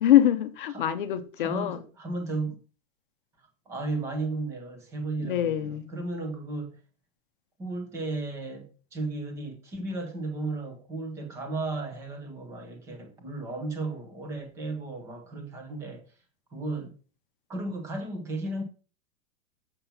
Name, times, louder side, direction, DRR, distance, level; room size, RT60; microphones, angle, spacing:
voice 1, 0.0-1.8 5.2-5.9, left 12 dB, 40° left, 0.7 m, -24 dB
voice 2, 1.4-2.6 3.4-6.8 7.6-16.0 16.5-16.9 17.5-18.6, right 2 dB, 5° right, 0.7 m, -34 dB
7.2 x 7.0 x 5.6 m
supercardioid pair, 175°, 41 cm